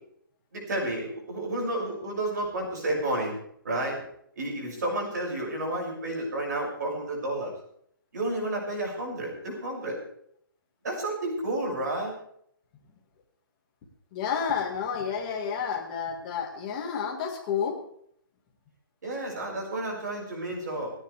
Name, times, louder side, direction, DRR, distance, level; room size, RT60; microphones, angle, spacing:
voice 1, 0.5-3.3 3.6-4.0 4.4-7.5 8.1-10.0 10.8-12.2 19.0-20.9, right 1 dB, 50° right, -1 dB, 7.0 m, -31 dB
voice 2, 14.1-17.8, left 7 dB, 20° left, 1 dB, 1.9 m, -30 dB
29.0 x 10.0 x 3.5 m, 0.67 s
hypercardioid pair, 180°, 12 cm